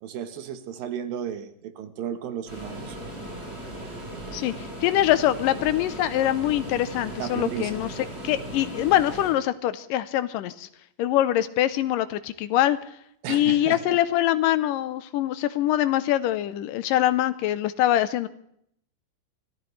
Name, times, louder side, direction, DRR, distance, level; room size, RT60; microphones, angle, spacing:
voice 1, 0.0-3.0 7.2-7.8 13.2-14.0, right 9 dB, 75° right, 9 dB, 2.9 m, -34 dB
sound 1, 2.5-9.3, right 1 dB, 15° right, 6.5 m, -37 dB
voice 2, 4.8-7.9 8.2-10.7 11.0-12.8 13.3-18.3, left 13 dB, 75° left, 13 dB, 2.3 m, -23 dB
25.0 x 14.5 x 3.3 m, 0.70 s
omnidirectional pair, 4.2 m